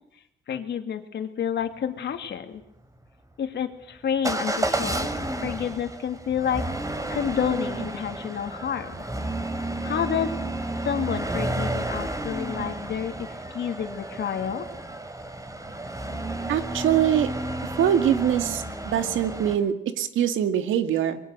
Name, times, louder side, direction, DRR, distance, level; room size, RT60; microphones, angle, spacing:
voice 1, 0.5-2.6 3.4-5.1 5.4-6.6 7.1-9.0 9.8-10.3 10.8-13.3 13.5-14.7, left 8 dB, 60° left, 7 dB, 2.7 m, -29 dB
Motor vehicle (road) / Engine starting / Accelerating revving vroom, 4.2-19.6, right 1 dB, 15° right, 3.5 m, -31 dB
voice 2, 16.5-17.3 17.8-21.2, right 10 dB, 80° right, 9 dB, 2.0 m, -23 dB
24.5 x 22.0 x 6.6 m, 0.77 s
cardioid pair, 90°, 20 cm